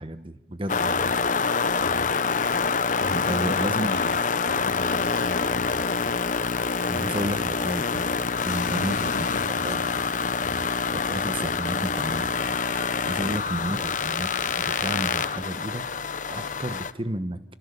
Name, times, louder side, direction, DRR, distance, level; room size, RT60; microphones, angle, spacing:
voice 1, 0.0-1.3 3.1-3.9 6.9-8.2 8.4-9.1 9.6-9.8 10.9-14.3 14.6-15.8 16.3-17.4, right 1 dB, 30° right, 11 dB, 1.2 m, -32 dB
sound 1, 0.7-16.9, left 5 dB, 45° left, 0.9 m, -26 dB
voice 2, 3.0-6.1 6.9-7.4 8.6-10.1 10.4-10.7 13.2-13.4, left 1 dB, 65° left, 6 dB, 1.8 m, -37 dB
28.0 x 25.5 x 6.8 m, 0.94 s
head